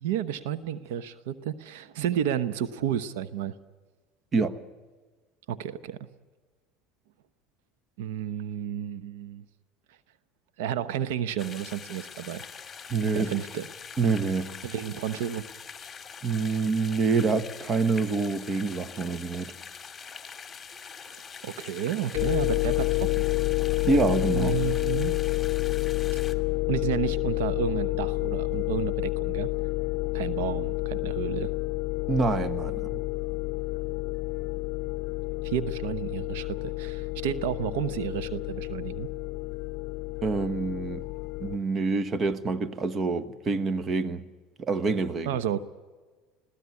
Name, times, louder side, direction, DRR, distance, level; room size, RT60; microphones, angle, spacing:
voice 1, 0.0-3.5 5.5-6.0 8.0-9.4 10.6-12.4 13.1-13.7 14.6-15.5 21.4-23.2 24.3-25.1 26.7-29.5 30.1-31.5 35.4-39.1 45.3-45.6, right 10 dB, 85° right, 0.9 m, -31 dB
sound 1, 11.4-26.3, left 6 dB, 20° left, 2.6 m, -44 dB
voice 2, 12.9-13.3 14.0-14.5 16.2-19.5 23.8-24.6 32.1-33.0 40.2-41.0 41.4-44.2 44.6-45.4, right 4 dB, 30° right, 1.3 m, -26 dB
sound 2, 22.1-41.6, left 21 dB, 60° left, 0.6 m, -29 dB
21.5 x 15.5 x 9.6 m
supercardioid pair, 105°, 0 cm